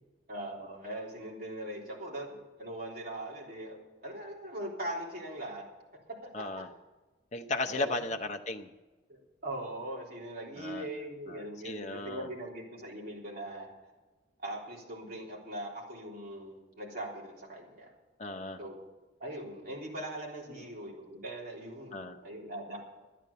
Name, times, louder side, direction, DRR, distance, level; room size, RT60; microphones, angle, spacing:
voice 1, 0.3-5.6 6.2-6.7 7.8-8.0 9.1-13.7 14.4-17.9 18.6-18.8 19.2-22.8, right 1 dB, 50° right, -2 dB, 3.6 m, -41 dB
voice 2, 6.3-6.7 7.3-8.7 10.6-10.9 11.3-12.3 18.2-18.6 21.9-22.2, left 2 dB, 35° left, 4 dB, 0.8 m, -36 dB
12.5 x 10.0 x 6.8 m, 1.2 s
head